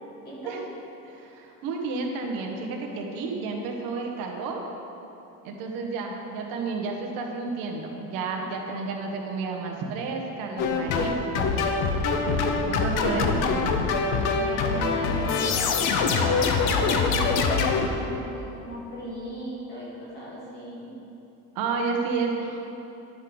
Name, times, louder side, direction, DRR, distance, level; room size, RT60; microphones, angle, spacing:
voice 1, 0.2-0.6 13.0-13.4 14.3-15.4 16.0-20.9, equal, 30° left, -7 dB, 1.9 m, -37 dB
voice 2, 1.0-4.6 5.4-11.6 12.7-13.8 21.5-22.6, right 4 dB, 90° right, 1 dB, 1.2 m, -31 dB
sound 1, 10.6-17.9, left 4 dB, 65° left, 0.7 m, -24 dB
10.0 x 6.4 x 3.9 m, 2.9 s
cardioid pair, 180°, 34 cm